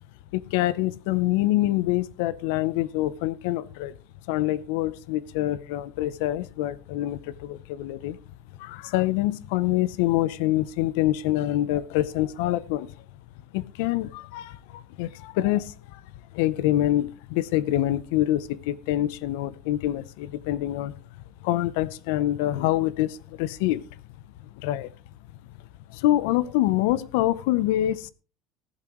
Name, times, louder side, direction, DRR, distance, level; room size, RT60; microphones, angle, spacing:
voice 1, 0.3-3.9 4.3-8.2 8.6-12.9 13.5-16.0 16.3-20.9 21.4-23.8 24.6-24.9 25.9-28.1, left 14 dB, 85° left, 0.6 m, -25 dB
14.5 x 11.5 x 3.1 m
cardioid pair, 160°, 0 cm